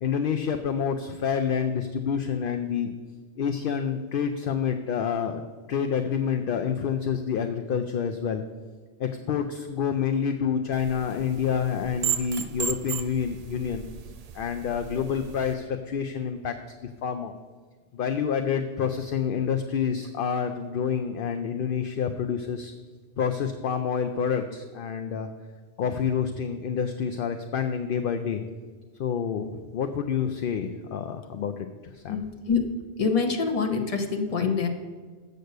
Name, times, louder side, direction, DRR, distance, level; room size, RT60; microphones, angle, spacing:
voice 1, 0.0-2.9 3.4-5.4 5.7-8.4 9.0-13.8 14.3-16.6 16.8-17.3 17.9-22.7 23.2-25.3 25.8-28.4 29.0-32.2, left 7 dB, 60° left, 7 dB, 0.7 m, -28 dB
sound 1, 10.7-15.5, right 7 dB, 60° right, 0.4 m, -35 dB
voice 2, 32.1-32.6 33.0-34.7, left 5 dB, 35° left, 3 dB, 0.9 m, -25 dB
7.9 x 6.6 x 6.5 m, 1.5 s
omnidirectional pair, 1.2 m